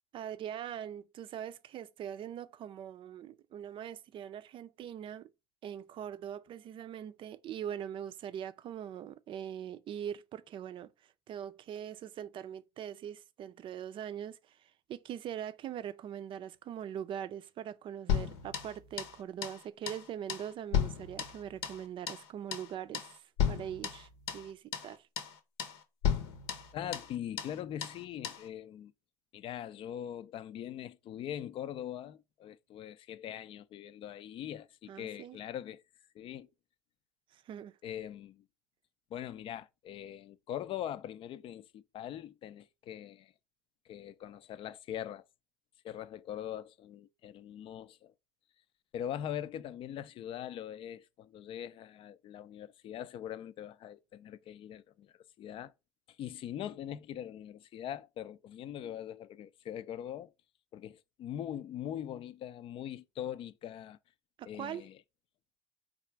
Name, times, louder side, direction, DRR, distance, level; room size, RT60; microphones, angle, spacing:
voice 1, 0.1-5.3 5.6-10.9 11.3-25.1 34.9-35.4 37.3-37.7 64.4-64.8, right 9 dB, 45° right, 0.5 m, -42 dB
sound 1, 18.1-19.2 19.4-19.6 19.9-20.0 20.3-21.8 22.1-22.3 22.5-22.7 22.9-23.1 23.4-24.5 24.7-24.9 25.2-25.3 25.6-25.8 26.0-27.1 27.4-27.5 27.8-28.0 28.2-28.4, left 8 dB, 75° left, 0.8 m, -34 dB
voice 2, 26.7-28.9 29.3-35.8 36.1-36.5 37.8-38.4 39.1-43.3 43.9-45.2 45.8-48.1 48.9-55.7 56.2-60.3 60.7-64.0 64.4-65.0, left 10 dB, 45° left, 0.5 m, -42 dB
4.0 x 2.5 x 4.5 m
hypercardioid pair, 85°, 12 cm